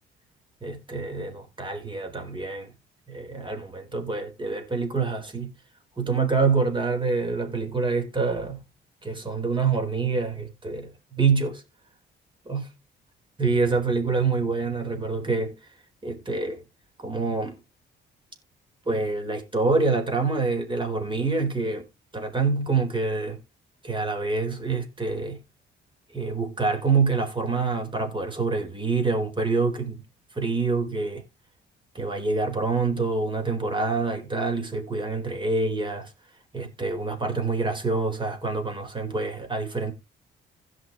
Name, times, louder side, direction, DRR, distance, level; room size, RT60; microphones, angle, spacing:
voice 1, 0.6-2.7 3.1-5.5 6.0-8.6 9.0-11.6 12.5-12.7 13.4-15.6 16.0-16.6 17.0-17.6 18.8-21.9 22.1-23.4 23.8-25.4 26.1-30.0 30.3-31.2 31.9-36.1 36.5-39.9, right 4 dB, 25° right, 4.6 m, -26 dB
16.5 x 6.1 x 3.2 m
cardioid pair, 90°, 20 cm